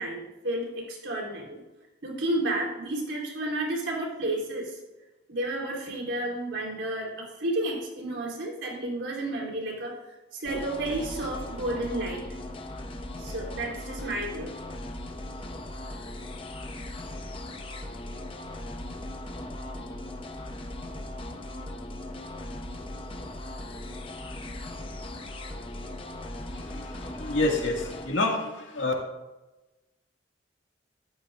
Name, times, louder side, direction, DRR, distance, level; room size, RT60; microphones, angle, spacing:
voice 1, 0.0-1.6 2.0-4.7 5.3-10.0 10.4-12.3 13.2-14.5, right 1 dB, 75° right, -1 dB, 3.6 m, -31 dB
sound 1, 10.4-28.1, left 1 dB, 25° left, 0.8 m, -38 dB
voice 2, 26.5-28.9, left 2 dB, 90° left, 1 dB, 2.0 m, -28 dB
13.0 x 12.0 x 2.5 m, 1.1 s
head